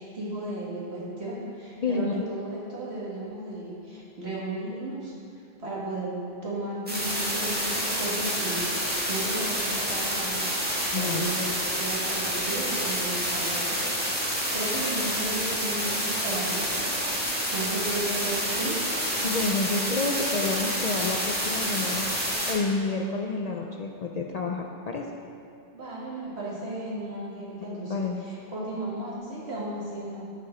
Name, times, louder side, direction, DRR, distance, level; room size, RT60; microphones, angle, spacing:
voice 1, 0.0-5.1 5.6-18.8 25.7-30.2, right 2 dB, 80° right, -6 dB, 2.1 m, -35 dB
voice 2, 1.8-2.2 10.9-11.3 19.2-22.1 22.5-25.1 27.9-28.3, left 3 dB, 55° left, 2 dB, 0.5 m, -29 dB
sound 1, 6.9-22.5, equal, 10° right, 1.6 m, -28 dB
12.0 x 4.7 x 4.2 m, 2.4 s
omnidirectional pair, 1.1 m